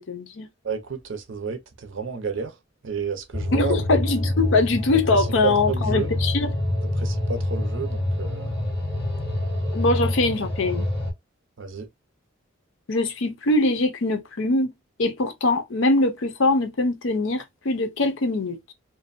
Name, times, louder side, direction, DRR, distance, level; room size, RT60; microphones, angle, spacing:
voice 1, 0.0-0.5 3.5-6.5 9.7-10.9 12.9-14.7 15.0-18.7, left 2 dB, 65° left, 0.6 m, -22 dB
voice 2, 0.6-2.6 2.8-3.8 4.9-6.1 7.0-8.6 11.6-11.9, right 5 dB, 65° right, 0.6 m, -31 dB
sound 1, 3.3-11.1, left 1 dB, 10° left, 1.3 m, -26 dB
2.6 x 2.1 x 2.5 m
head